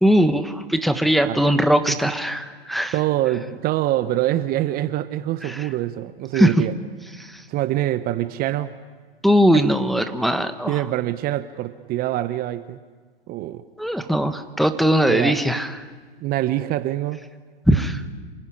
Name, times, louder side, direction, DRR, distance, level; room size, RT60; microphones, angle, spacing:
voice 1, 0.0-2.9 5.4-5.7 6.3-6.5 7.2-7.4 9.2-10.8 13.8-15.8 17.7-18.0, equal, ahead, 8 dB, 1.2 m, -20 dB
voice 2, 2.9-6.7 7.5-8.7 9.5-9.6 10.7-12.8 13.3-13.6 15.1-15.3 16.2-17.2, right 14 dB, 30° right, 12 dB, 0.9 m, -24 dB
27.5 x 16.5 x 10.0 m, 1.5 s
hypercardioid pair, 110°, 29 cm